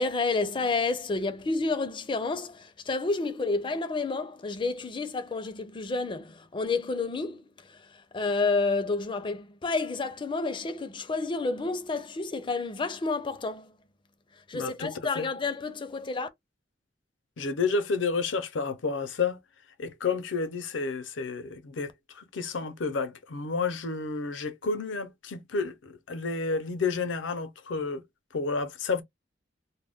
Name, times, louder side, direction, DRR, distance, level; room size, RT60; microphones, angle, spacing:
voice 1, 0.0-13.7 14.5-16.3, left 3 dB, 25° left, 0.4 m, -30 dB
voice 2, 14.5-15.3 17.4-19.4 19.8-21.9 22.1-28.0 28.3-29.0, left 4 dB, 80° left, 0.6 m, -30 dB
2.2 x 2.1 x 3.4 m
head